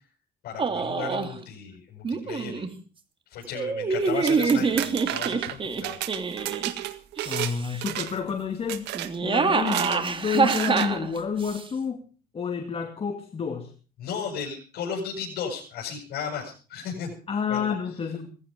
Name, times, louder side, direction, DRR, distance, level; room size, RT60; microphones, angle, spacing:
voice 1, 0.4-2.7 3.3-6.0 14.0-17.1 17.5-17.7, left 6 dB, 65° left, -2 dB, 7.6 m, -35 dB
sound 1, 0.6-1.3 2.0-2.7 3.5-6.7 7.2-7.8 8.9-11.6, right 5 dB, 30° right, 2.5 m, -26 dB
sound 2, 4.1-7.5 7.8-8.3 8.7-9.1 9.6-10.0 10.5-10.9, right 14 dB, 85° right, 1.7 m, -32 dB
voice 2, 7.2-9.0 9.2-12.0 12.3-13.7 17.3-18.3, left 6 dB, 35° left, 5 dB, 2.4 m, -29 dB
18.0 x 15.5 x 5.2 m, 0.38 s
cardioid pair, 110°, 17 cm